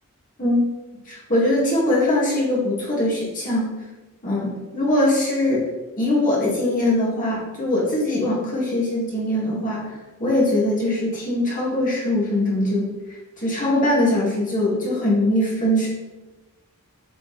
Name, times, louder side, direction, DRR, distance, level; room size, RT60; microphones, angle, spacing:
voice 1, 1.1-3.7 4.2-5.7 6.0-12.9 13.4-15.9, left 1 dB, 35° left, -5 dB, 2.4 m, -22 dB
8.0 x 5.0 x 3.5 m, 1.1 s
head